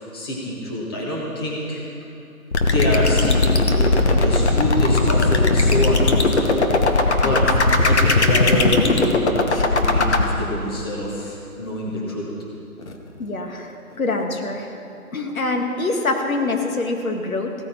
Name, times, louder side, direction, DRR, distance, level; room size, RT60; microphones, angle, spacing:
voice 1, 0.1-1.8 2.6-6.7 7.2-7.4 7.8-9.4 9.7-12.2, equal, 15° left, -4 dB, 1.3 m, -26 dB
sound 1, 2.5-10.2, left 3 dB, 50° left, 1.3 m, -17 dB
voice 2, 13.2-14.7 15.1-17.5, left 2 dB, 65° left, 3 dB, 2.0 m, -25 dB
16.5 x 13.5 x 4.5 m, 2.7 s
figure-of-eight pair, 165°, 44 cm